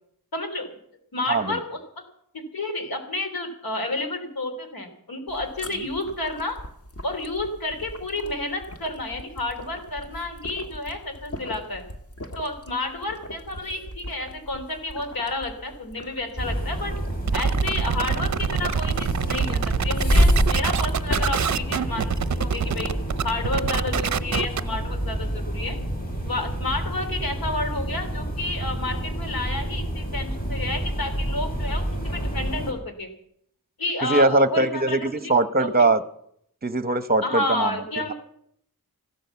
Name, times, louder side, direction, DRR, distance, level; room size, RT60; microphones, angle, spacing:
voice 1, 0.3-0.7 1.1-2.0 2.3-6.6 7.0-11.8 12.3-16.9 17.3-22.9 23.2-25.8 26.2-31.8 32.1-33.1 33.8-35.3 35.6-35.9 37.2-38.1, left 2 dB, 70° left, 6 dB, 3.1 m, -30 dB
voice 2, 1.3-1.6 34.0-36.0 36.6-37.7, right 2 dB, 25° right, 13 dB, 1.0 m, -21 dB
sound 1, 5.3-22.5, equal, 40° left, 1.8 m, -31 dB
sound 2, 16.4-32.7, right 1 dB, 25° left, 4.9 m, -29 dB
sound 3, 17.3-24.8, right 7 dB, 50° right, 0.6 m, -26 dB
15.5 x 12.5 x 7.1 m, 0.72 s
wide cardioid pair, 80°, 36 cm